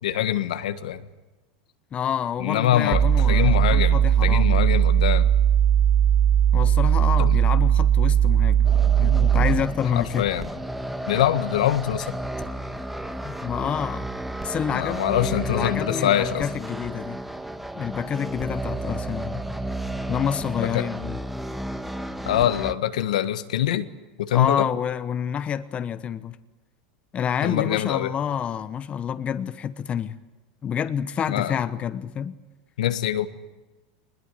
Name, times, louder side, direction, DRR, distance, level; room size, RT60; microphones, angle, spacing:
voice 1, 0.0-1.1 2.4-5.3 7.2-7.4 9.9-10.4 11.1-12.1 14.7-16.4 20.6-20.8 22.2-23.9 24.2-24.7 27.4-28.1 31.3-31.6 32.8-33.3, left 11 dB, 80° left, 1.6 m, -24 dB
voice 2, 1.9-4.8 6.5-10.3 13.2-14.1 14.4-17.2 17.7-19.4 20.1-21.2 24.3-26.4 27.1-30.2 30.6-32.4, left 8 dB, 30° left, 1.0 m, -28 dB
sound 1, 2.9-9.7, right 9 dB, 45° right, 1.4 m, -19 dB
sound 2, 8.6-22.7, right 1 dB, 5° right, 1.5 m, -32 dB
22.0 x 20.5 x 9.5 m
hypercardioid pair, 105°, 4 cm